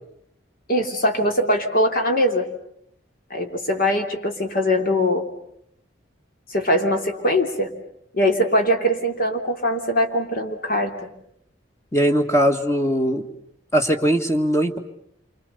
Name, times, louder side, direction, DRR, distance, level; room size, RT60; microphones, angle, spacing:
voice 1, 0.7-2.4 3.3-5.3 6.5-7.7 8.1-11.1, equal, 50° left, 4 dB, 3.2 m, -21 dB
voice 2, 11.9-13.3 13.7-14.8, equal, 15° left, 5 dB, 1.9 m, -20 dB
28.5 x 25.5 x 7.0 m, 0.73 s
head